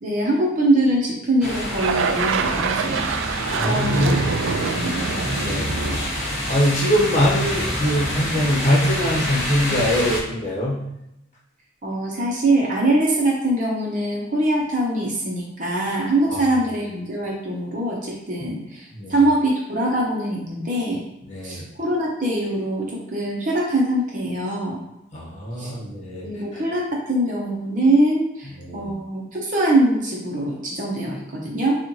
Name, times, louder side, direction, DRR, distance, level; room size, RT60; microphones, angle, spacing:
voice 1, 0.0-3.1 3.6-5.1 11.8-21.1 21.4-24.8 25.6-25.7 26.2-31.8, right 1 dB, 40° right, -3 dB, 0.9 m, -23 dB
sound 1, 1.4-10.2, left 1 dB, 5° right, 1.2 m, -27 dB
sound 2, 1.7-7.1, right 6 dB, 80° right, 0.3 m, -26 dB
voice 2, 3.5-4.5 5.3-5.9 6.5-10.8 18.9-19.2 21.3-21.6 25.1-26.3 26.5-26.6 28.5-28.9, equal, 40° left, -4 dB, 1.2 m, -23 dB
6.6 x 2.5 x 3.1 m, 0.86 s
head